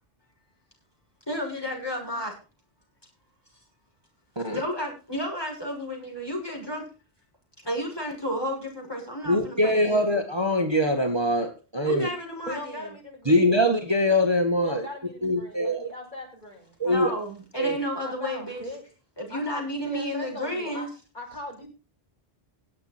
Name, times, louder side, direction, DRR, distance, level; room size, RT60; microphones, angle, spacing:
voice 1, 1.3-2.3 4.5-6.8 7.6-10.1 11.8-12.8 16.8-18.6 19.2-20.9, equal, 20° left, 0 dB, 6.2 m, -32 dB
voice 2, 9.3-12.1 13.3-14.9 15.2-15.9 16.8-17.1 17.6-17.8, left 1 dB, 25° right, 4 dB, 1.8 m, -23 dB
voice 3, 12.5-13.6 14.6-17.2 18.0-18.8 19.3-20.9 21.1-21.7, left 1 dB, 45° left, 0 dB, 6.8 m, -39 dB
19.5 x 8.2 x 4.4 m, 0.34 s
omnidirectional pair, 1.1 m